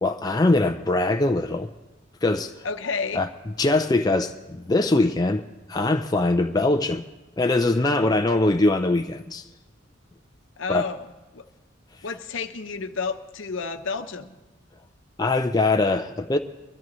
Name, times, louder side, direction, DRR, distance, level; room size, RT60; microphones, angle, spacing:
voice 1, 0.0-1.7 2.2-2.5 3.1-3.3 3.6-5.4 5.7-7.0 7.4-9.5 10.7-10.8 15.2-16.4, left 2 dB, 20° left, 0.4 m, -22 dB
voice 2, 2.6-3.2 10.6-11.0 11.3-11.5 12.0-14.4, left 4 dB, 65° left, 0.9 m, -31 dB
23.0 x 13.5 x 3.1 m
head